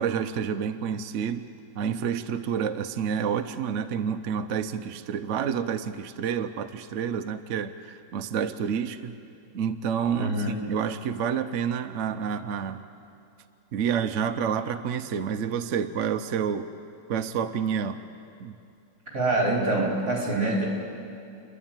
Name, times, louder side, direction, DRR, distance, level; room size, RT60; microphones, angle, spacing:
voice 1, 0.0-1.5 1.8-9.2 9.5-12.8 13.7-16.7 17.1-18.0 18.4-18.5, right 7 dB, 65° right, 9 dB, 0.7 m, -29 dB
voice 2, 10.1-10.6 19.1-20.6, right 2 dB, 50° right, -2 dB, 4.7 m, -25 dB
29.0 x 11.0 x 8.9 m, 2.5 s
omnidirectional pair, 2.2 m